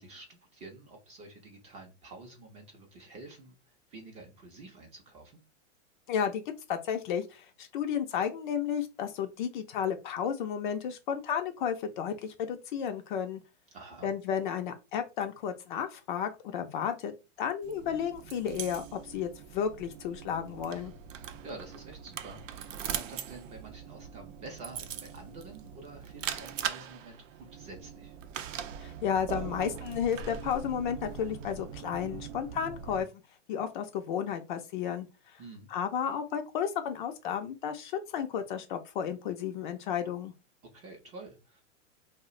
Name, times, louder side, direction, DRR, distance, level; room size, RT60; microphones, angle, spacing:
voice 1, 0.0-5.4 13.7-14.1 21.4-28.2 35.4-35.7 40.7-41.6, right 2 dB, 20° right, 0.5 m, -48 dB
voice 2, 6.1-6.4 6.7-13.4 14.0-17.1 17.4-20.9 28.8-33.1 33.5-35.1 35.3-35.4 35.7-40.3, left 8 dB, 40° left, 0.4 m, -32 dB
sound 1, 17.6-33.0, right 8 dB, 75° right, 0.5 m, -41 dB
2.4 x 2.1 x 3.6 m
hypercardioid pair, 135°, 38 cm